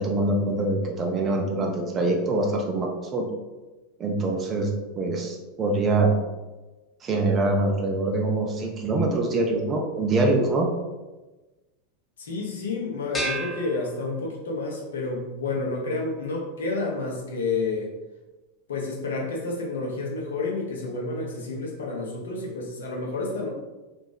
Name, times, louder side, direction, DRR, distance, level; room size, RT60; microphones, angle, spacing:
voice 1, 0.0-3.3 4.0-4.7 5.0-6.2 7.0-10.7, right 2 dB, 30° right, 1 dB, 0.3 m, -24 dB
voice 2, 12.2-17.9 18.7-23.5, left 3 dB, 70° left, -1 dB, 0.5 m, -30 dB
sound 1, 13.1-14.6, right 1 dB, 20° left, 0.6 m, -33 dB
2.6 x 2.2 x 2.3 m, 1.2 s
figure-of-eight pair, 85°, 0 cm